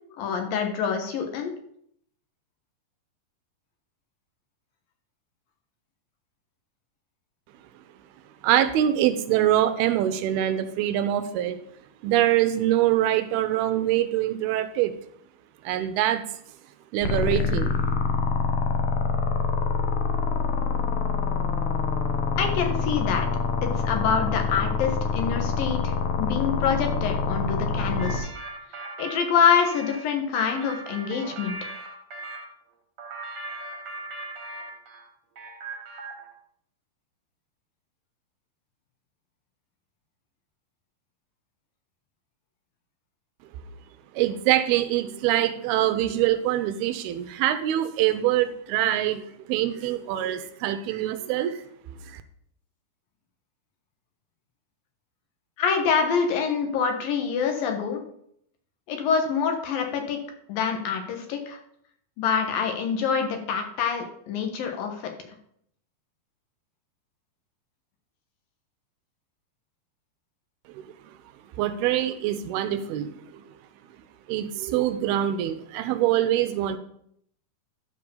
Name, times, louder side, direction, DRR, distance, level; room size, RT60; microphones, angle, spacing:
voice 1, 0.2-1.6 22.4-23.3 23.6-28.3 29.0-31.6 55.6-58.0 58.9-60.2 60.5-61.6 62.2-65.1, left 6 dB, 70° left, 4 dB, 2.7 m, -26 dB
voice 2, 8.4-11.6 12.0-14.9 15.6-16.2 16.9-17.8 44.1-52.2 70.7-70.9 71.6-73.4 74.3-76.8, right 12 dB, 85° right, 10 dB, 2.5 m, -24 dB
sound 1, 17.0-28.2, left 4 dB, 85° left, 3.3 m, -25 dB
sound 2, 28.0-32.5 33.0-35.1 35.4-36.3, right 2 dB, 45° right, 2.1 m, -38 dB
12.0 x 4.8 x 6.9 m, 0.69 s
omnidirectional pair, 4.6 m